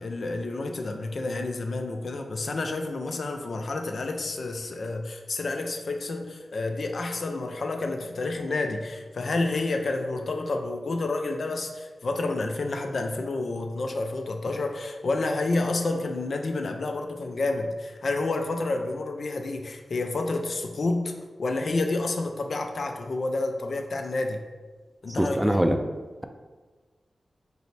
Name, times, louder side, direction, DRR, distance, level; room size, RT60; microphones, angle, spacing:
voice 1, 0.0-21.1 21.4-24.4 25.0-25.6, left 2 dB, 70° left, 4 dB, 0.4 m, -29 dB
voice 2, 25.2-25.8, equal, 15° right, 6 dB, 0.4 m, -22 dB
5.2 x 2.1 x 3.2 m, 1.3 s
cardioid pair, 40°, 0 cm